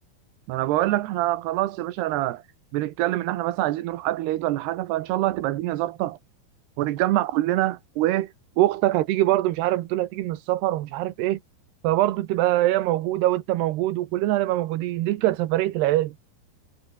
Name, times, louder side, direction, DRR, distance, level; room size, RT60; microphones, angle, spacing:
voice 1, 0.5-2.4 2.7-6.2 6.8-11.4 11.8-16.1, right 15 dB, 75° right, 3.1 m, -24 dB
omnidirectional pair, 5.1 m